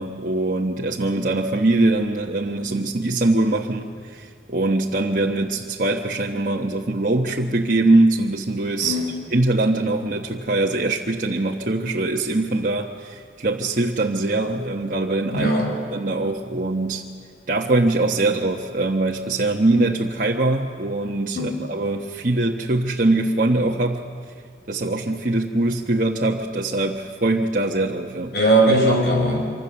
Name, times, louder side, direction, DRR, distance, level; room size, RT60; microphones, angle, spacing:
voice 1, 0.0-9.0 9.3-15.5 15.9-17.0 17.5-24.0 24.7-28.3, right 2 dB, 45° right, -2 dB, 1.2 m, -22 dB
voice 2, 15.3-15.9 21.3-21.5 28.3-29.5, right 1 dB, 60° left, 1 dB, 5.4 m, -19 dB
25.5 x 25.0 x 7.1 m, 2.1 s
head